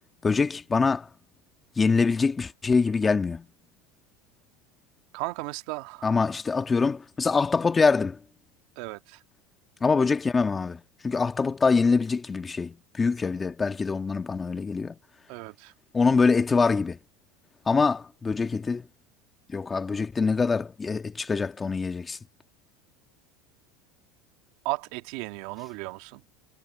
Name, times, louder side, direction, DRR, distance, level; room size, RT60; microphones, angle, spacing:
voice 1, 0.2-1.1 1.8-3.4 6.0-8.2 9.8-15.0 15.9-17.0 17.7-18.8 19.5-22.2, left 4 dB, 20° left, 1.6 m, -24 dB
voice 2, 5.1-6.2 8.8-9.2 15.3-15.7 24.6-26.2, right 22 dB, 65° right, 1.8 m, -35 dB
supercardioid pair, 125°, 0 cm